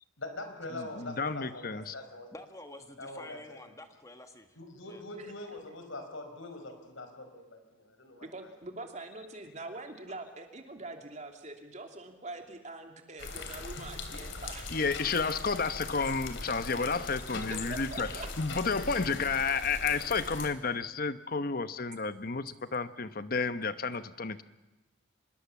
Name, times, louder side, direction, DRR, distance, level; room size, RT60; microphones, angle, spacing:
voice 1, 0.2-2.3 3.0-3.6 4.6-8.3 15.8-16.0, left 2 dB, 80° left, 6 dB, 4.9 m, -43 dB
voice 2, 1.0-1.9 14.7-18.1 18.4-24.4, left 4 dB, 45° left, 12 dB, 1.0 m, -31 dB
voice 3, 2.3-4.6 4.9-5.0, left 2 dB, 15° left, 6 dB, 1.4 m, -49 dB
voice 4, 8.2-14.7 17.5-18.3, right 2 dB, 35° right, 4 dB, 2.9 m, -44 dB
sound 1, 13.2-20.5, left 3 dB, 65° left, 3.2 m, -41 dB
25.0 x 21.0 x 7.2 m, 1.1 s
head